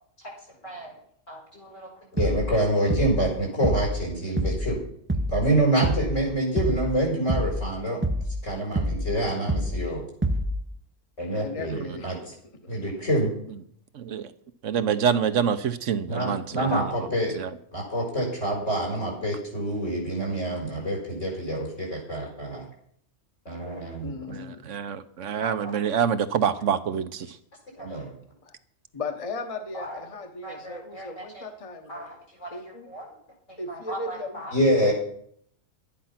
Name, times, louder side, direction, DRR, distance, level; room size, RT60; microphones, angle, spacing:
voice 1, 0.6-0.9 1.3-4.8 5.3-8.0 8.4-10.0 11.2-12.1 12.7-13.3 16.1-17.3 17.7-22.6 23.5-24.1 25.4-25.9 27.8-28.1 29.7-30.0 30.4-31.4 31.9-32.5 32.9-33.0 33.7-34.9, right 1 dB, 75° left, 0 dB, 5.9 m, -27 dB
Kick - Four on the Floor, 2.2-2.5 2.9-3.3 3.6-4.0 4.4-4.7 5.1-5.5 5.8-6.2 6.6-6.9 7.3-7.7 8.0-8.4 8.8-9.1 9.5-9.9 10.2-10.6, equal, 15° right, 0.5 m, -26 dB
voice 2, 11.4-12.3 12.6-12.9 24.0-24.7 28.4-28.5 28.9-32.1 32.5-32.9 33.6-34.9, left 3 dB, 30° left, 6 dB, 1.2 m, -37 dB
voice 3, 13.9-14.3 14.6-17.1 17.4-17.5 24.3-27.4, right 7 dB, 75° right, 11 dB, 1.2 m, -26 dB
12.5 x 10.5 x 5.8 m, 0.65 s
omnidirectional pair, 1.3 m